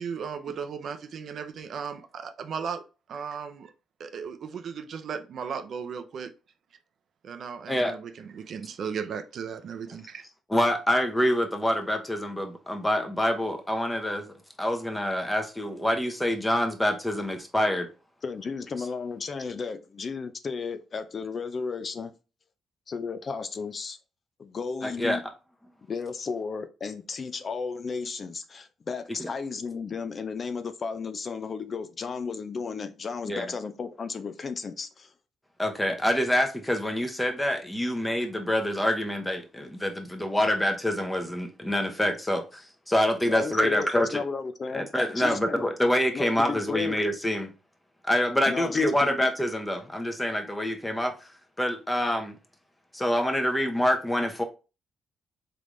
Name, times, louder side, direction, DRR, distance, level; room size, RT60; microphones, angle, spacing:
voice 1, 0.0-2.8 3.1-3.7 4.0-6.3 7.2-10.2, right 6 dB, 60° right, 0.5 m, -36 dB
voice 2, 10.5-14.3 14.6-17.9 24.8-25.2 29.2-29.3 33.3-33.5 35.6-44.2 44.7-47.5 48.0-51.1 51.6-52.4 52.9-54.4, left 1 dB, 10° left, 0.9 m, -26 dB
voice 3, 18.2-22.1 22.9-24.0 24.4-25.2 25.9-35.1 43.3-44.9 45.1-45.6 46.1-46.9 48.5-49.2, left 5 dB, 40° left, 0.4 m, -34 dB
3.8 x 3.4 x 3.1 m
cardioid pair, 90°, 0 cm